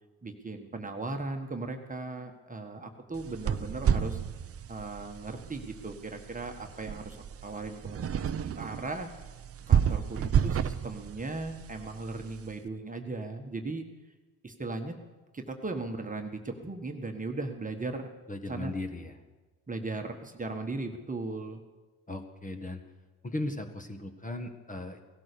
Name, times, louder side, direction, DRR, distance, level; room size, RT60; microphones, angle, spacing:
voice 1, 0.2-4.2 4.7-9.1 9.7-13.9 14.4-14.9 15.3-18.1 18.4-18.7 19.7-21.6, right 3 dB, 20° right, 4 dB, 1.5 m, -37 dB
sound 1, 3.1-12.5, right 8 dB, 35° right, 0.7 m, -31 dB
voice 2, 18.3-19.1 22.1-22.8 23.2-25.0, left 2 dB, 20° left, 6 dB, 1.6 m, -37 dB
17.0 x 12.0 x 6.9 m, 1.3 s
supercardioid pair, 75°, 40 cm